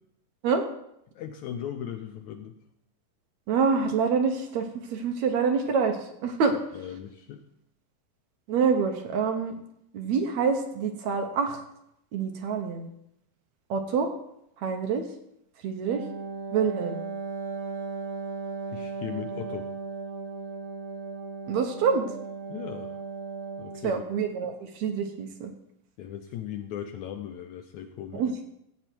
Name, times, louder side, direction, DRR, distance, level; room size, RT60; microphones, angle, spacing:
voice 1, 1.1-2.6 6.7-7.4 18.7-19.7 22.5-23.0 23.6-24.0 26.0-28.3, left 10 dB, 80° left, 6 dB, 1.7 m, -38 dB
voice 2, 3.5-6.5 8.5-9.6 9.9-11.6 12.1-12.9 13.7-14.1 14.6-15.1 15.6-16.0 16.5-17.0 21.5-22.1 23.8-25.5 28.1-28.4, right 5 dB, 65° right, 4 dB, 1.9 m, -26 dB
Wind instrument woodwind instrument, 15.8-24.0, right 4 dB, 80° right, 3.9 m, -36 dB
16.5 x 8.0 x 4.5 m, 0.79 s
omnidirectional pair, 4.2 m